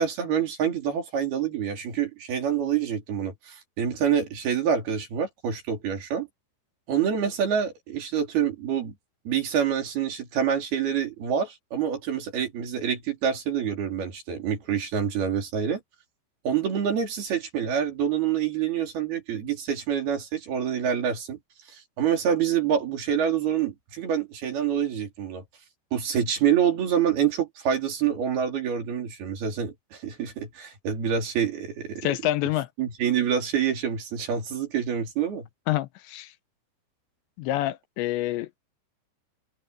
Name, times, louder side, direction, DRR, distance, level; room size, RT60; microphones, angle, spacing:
voice 1, 0.0-6.3 6.9-8.9 9.3-15.8 16.5-21.4 21.7-25.4 25.9-32.1 32.8-35.5, right 8 dB, 55° right, 5.2 m, -26 dB
voice 2, 32.0-32.7 35.7-36.3 37.4-38.6, left 15 dB, 85° left, 2.9 m, -27 dB
omnidirectional pair, 5.4 m